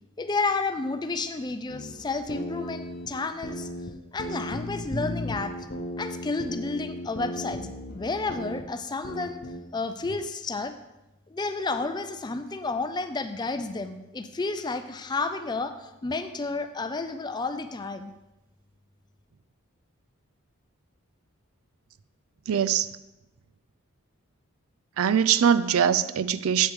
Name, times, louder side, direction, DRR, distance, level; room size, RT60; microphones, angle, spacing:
voice 1, 0.2-3.7 4.1-5.7 6.0-7.6 7.9-9.4 9.7-10.7 11.3-18.1, left 3 dB, 20° left, 0.4 m, -31 dB
sound 1, 1.7-3.9 4.2-8.6 9.0-9.6, left 1 dB, 50° left, 0.8 m, -35 dB
voice 2, 22.5-22.9 25.0-26.7, right 8 dB, 70° right, 0.4 m, -22 dB
8.1 x 7.9 x 3.5 m
head